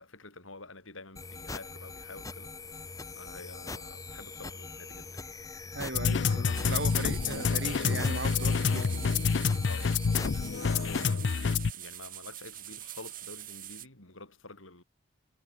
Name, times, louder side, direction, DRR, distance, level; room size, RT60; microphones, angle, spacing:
voice 1, 0.0-2.5 3.2-5.3 9.6-11.4 11.7-14.8, left 3 dB, 90° left, 5.2 m, -48 dB
sound 1, 1.2-11.1, left 3 dB, 15° left, 0.8 m, -43 dB
voice 2, 5.7-9.2, right 2 dB, 60° right, 2.4 m, -38 dB
sound 2, 5.9-11.7, left 5 dB, 65° left, 0.5 m, -28 dB
sound 3, 6.5-13.9, right 13 dB, 45° right, 7.7 m, -44 dB
head